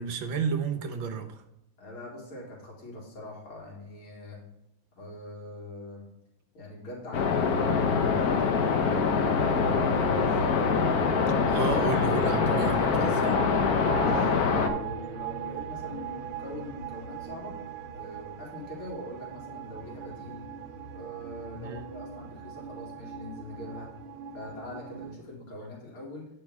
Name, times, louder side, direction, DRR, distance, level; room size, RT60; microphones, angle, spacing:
voice 1, 0.0-1.4 11.5-13.3 21.6-21.8, right 5 dB, 70° right, 6 dB, 1.7 m, -32 dB
voice 2, 1.8-4.4 5.0-6.1 6.5-10.6 13.9-17.5 17.9-20.5 20.9-23.9 24.3-26.3, left 1 dB, 90° left, -3 dB, 3.1 m, -43 dB
sound 1, 7.1-14.7, left 5 dB, 55° left, 1.2 m, -24 dB
sound 2, 9.3-25.2, right 6 dB, 90° right, 1.5 m, -38 dB
8.8 x 5.5 x 4.8 m, 0.80 s
omnidirectional pair, 2.3 m